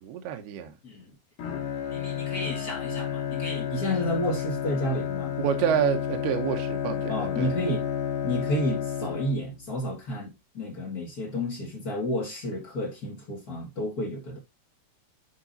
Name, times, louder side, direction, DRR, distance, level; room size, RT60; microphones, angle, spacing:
voice 1, 0.0-0.7 5.4-7.5, right 9 dB, 80° right, 2.8 m, -28 dB
Bowed string instrument, 1.4-9.7, left 9 dB, 65° left, 4.0 m, -31 dB
voice 2, 1.9-5.3 7.1-7.9 8.2-14.4, equal, 50° left, 1.1 m, -31 dB
11.0 x 5.2 x 2.7 m
omnidirectional pair, 4.7 m